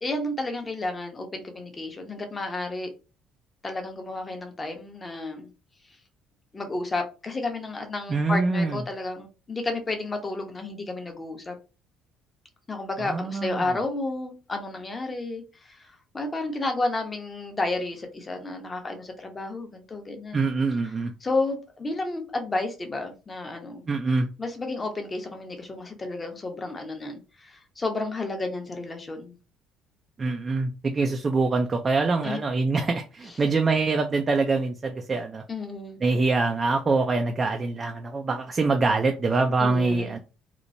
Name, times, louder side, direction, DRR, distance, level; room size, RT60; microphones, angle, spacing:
voice 1, 0.0-2.9 3.6-5.5 6.5-11.5 12.7-20.4 21.2-23.9 24.4-29.4 32.2-32.4 35.5-36.0 39.6-40.2, left 2 dB, 25° left, 4 dB, 0.8 m, -31 dB
voice 2, 8.1-8.8 13.0-13.8 20.3-21.1 23.9-24.3 30.2-35.4 36.0-40.2, right 3 dB, 30° right, 4 dB, 0.4 m, -24 dB
2.9 x 2.0 x 2.5 m, 0.31 s
cardioid pair, 95°, 0 cm